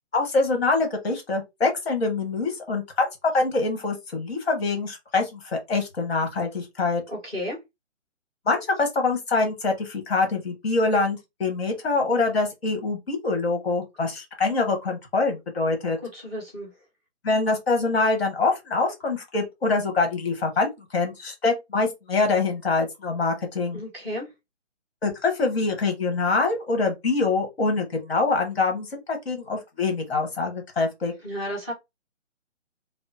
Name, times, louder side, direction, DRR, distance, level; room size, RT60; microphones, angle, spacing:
voice 1, 0.1-7.0 8.5-16.0 17.2-23.8 25.0-31.1, left 3 dB, 55° left, 1.5 m, -25 dB
voice 2, 7.1-7.6 16.1-16.7 23.7-24.3 31.2-31.7, equal, 5° left, 0.7 m, -32 dB
3.5 x 2.1 x 2.8 m
hypercardioid pair, 165°, 37 cm